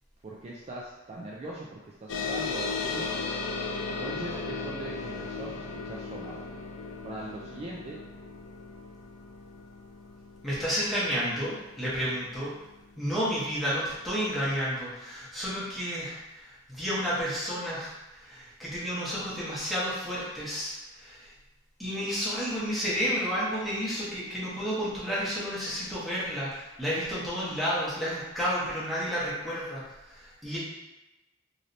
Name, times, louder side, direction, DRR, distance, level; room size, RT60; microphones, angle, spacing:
voice 1, 0.2-3.2 3.8-6.5 7.0-8.0, right 2 dB, 35° right, -4 dB, 0.3 m, -41 dB
sound 1, 2.1-13.0, left 4 dB, 85° left, 0.4 m, -36 dB
voice 2, 10.4-12.5 13.0-21.3 21.8-30.6, equal, ahead, -9 dB, 0.9 m, -31 dB
3.2 x 2.6 x 2.6 m, 1.0 s
head